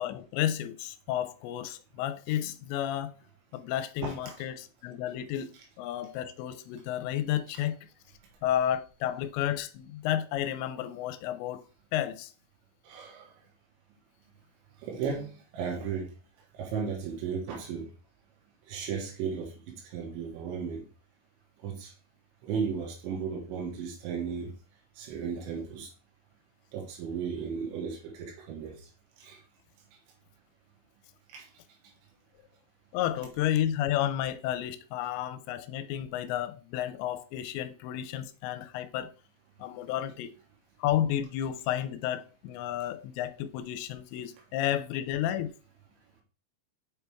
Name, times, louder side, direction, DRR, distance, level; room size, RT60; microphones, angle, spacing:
voice 1, 0.0-3.2 3.5-7.8 8.4-11.6 11.9-12.3 32.9-39.1 39.6-40.3 40.8-45.5, left 11 dB, 80° left, 2.8 m, -31 dB
voice 2, 4.0-4.4 12.9-13.3 14.8-16.1 16.6-17.9 18.7-20.8 21.6-21.9 22.4-24.5 25.0-25.9 26.7-28.7 29.2-29.4 31.3-31.5, right 6 dB, 85° right, 3.9 m, -35 dB
8.0 x 4.5 x 3.5 m
omnidirectional pair, 5.2 m